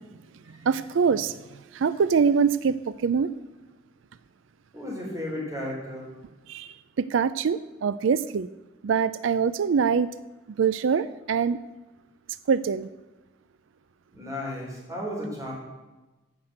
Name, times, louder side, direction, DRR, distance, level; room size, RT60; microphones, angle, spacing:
voice 1, 0.6-1.3 1.7-3.3 6.5-6.7 7.0-8.5 8.8-10.1 10.6-11.6 12.5-12.9, right 6 dB, 90° right, 16 dB, 0.4 m, -23 dB
voice 2, 4.7-6.1 14.1-15.5, left 1 dB, 15° right, -3 dB, 3.8 m, -34 dB
14.5 x 6.0 x 7.8 m, 1.1 s
head